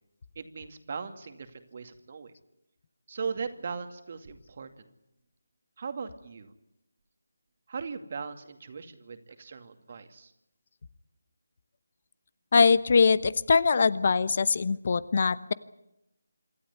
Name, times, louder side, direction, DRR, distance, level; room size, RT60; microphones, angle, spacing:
voice 1, 0.4-2.3 3.1-4.9 5.8-6.5 7.7-10.3, right 5 dB, 45° right, 8 dB, 2.3 m, -38 dB
voice 2, 12.5-15.5, left 5 dB, 45° left, 17 dB, 0.9 m, -22 dB
26.5 x 13.0 x 9.7 m, 0.86 s
figure-of-eight pair, 160°, 0 cm